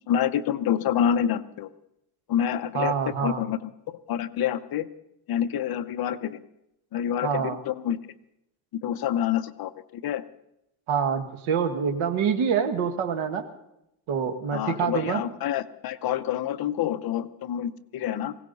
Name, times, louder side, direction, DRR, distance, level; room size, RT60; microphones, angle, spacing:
voice 1, 0.1-1.7 2.3-4.9 5.3-6.4 6.9-8.0 8.8-10.2 14.5-18.4, left 10 dB, 50° left, 10 dB, 0.8 m, -27 dB
voice 2, 2.7-3.4 7.2-7.6 10.9-13.4 14.1-15.2, right 7 dB, 75° right, 6 dB, 1.7 m, -26 dB
19.5 x 17.0 x 4.1 m, 0.82 s
cardioid pair, 155°, 48 cm